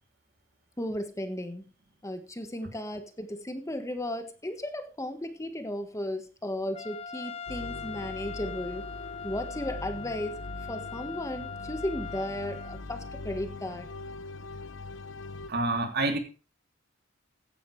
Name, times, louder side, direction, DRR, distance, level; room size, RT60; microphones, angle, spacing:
voice 1, 0.8-1.6 2.0-8.8 9.2-10.4 10.7-13.9, left 1 dB, 15° left, 8 dB, 1.4 m, -35 dB
Trumpet, 6.7-12.8, left 6 dB, 30° left, 0.8 m, -41 dB
sound 1, 7.5-15.5, left 2 dB, 70° left, 1.0 m, -42 dB
voice 2, 15.5-16.2, right 2 dB, 55° right, 5 dB, 3.1 m, -27 dB
15.5 x 11.0 x 3.3 m, 0.34 s
head